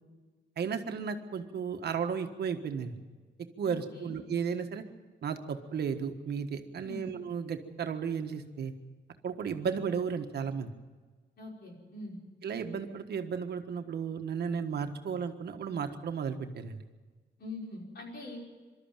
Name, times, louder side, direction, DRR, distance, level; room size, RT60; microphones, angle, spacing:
voice 1, 0.6-2.9 3.6-4.8 5.2-8.7 9.2-10.7 12.4-16.8, right 6 dB, 65° right, 6 dB, 1.5 m, -34 dB
voice 2, 3.6-4.1 6.8-7.0 11.4-12.2 17.4-18.4, left 2 dB, 65° left, -1 dB, 5.4 m, -43 dB
24.5 x 13.0 x 9.0 m, 1.4 s
wide cardioid pair, 165°, 18 cm